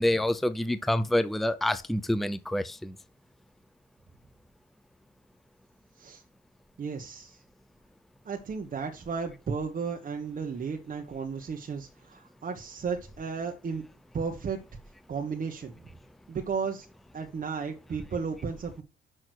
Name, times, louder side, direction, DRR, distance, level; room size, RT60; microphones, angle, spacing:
voice 1, 0.0-2.9, left 1 dB, ahead, 0.6 m, -27 dB
voice 2, 6.8-7.4 8.2-13.9 14.1-14.6 15.1-15.9 16.3-16.9 17.1-18.8, right 5 dB, 45° right, 1.3 m, -34 dB
6.4 x 6.2 x 6.2 m
cardioid pair, 90°, 20 cm